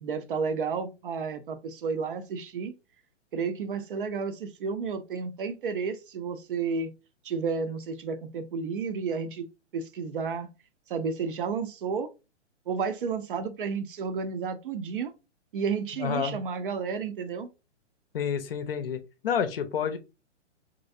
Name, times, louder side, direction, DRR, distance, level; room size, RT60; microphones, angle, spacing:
voice 1, 0.0-2.7 3.3-6.9 7.2-9.5 9.7-10.5 10.9-12.1 12.7-15.1 15.5-17.5, right 5 dB, 50° right, 0.5 m, -31 dB
voice 2, 16.0-16.4 18.1-20.0, left 7 dB, 55° left, 0.6 m, -29 dB
3.0 x 2.7 x 2.5 m
figure-of-eight pair, 120°, 35 cm